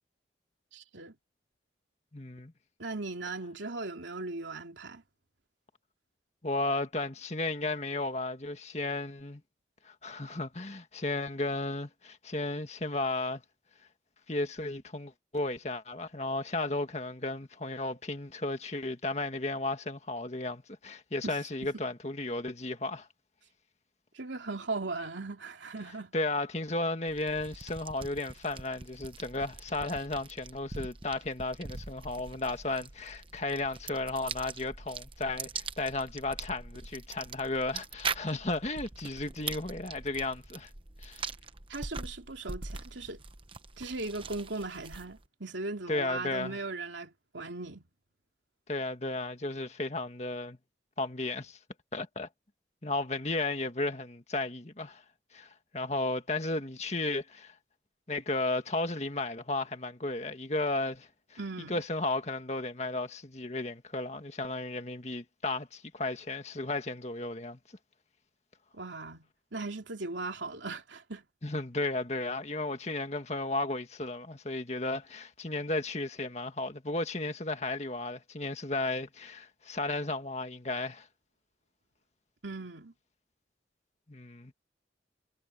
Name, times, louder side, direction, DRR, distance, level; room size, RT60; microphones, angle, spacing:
voice 1, 0.7-1.1 2.8-5.0 21.2-21.4 24.1-26.1 41.7-43.2 43.8-47.8 61.4-61.8 68.7-71.2 82.4-82.9, right 3 dB, 85° right, 3.0 m, -38 dB
voice 2, 2.1-2.5 6.4-9.4 9.9-13.4 14.3-23.1 26.1-40.7 41.0-41.3 45.9-46.6 48.7-50.6 51.0-51.6 51.9-52.3 52.8-55.0 55.3-57.5 58.1-61.4 61.7-67.6 71.4-81.1 84.1-84.5, left 2 dB, 35° left, 1.9 m, -34 dB
sound 1, 27.1-45.3, right 4 dB, 30° right, 1.0 m, -42 dB
head